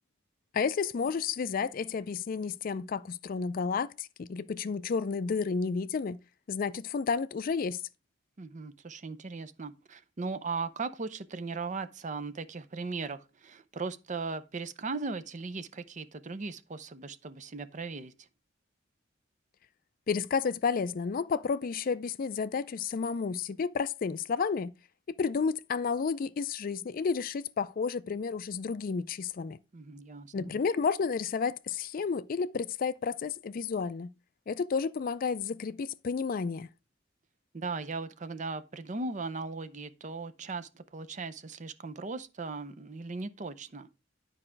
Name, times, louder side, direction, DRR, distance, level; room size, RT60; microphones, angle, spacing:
voice 1, 0.5-6.2 6.5-7.8 20.1-24.7 25.2-29.6 30.3-34.1 34.5-36.7, left 5 dB, 50° left, 0.4 m, -31 dB
voice 2, 8.4-18.3 29.7-30.5 37.5-43.9, right 4 dB, 40° right, 0.6 m, -38 dB
9.9 x 4.9 x 4.5 m
head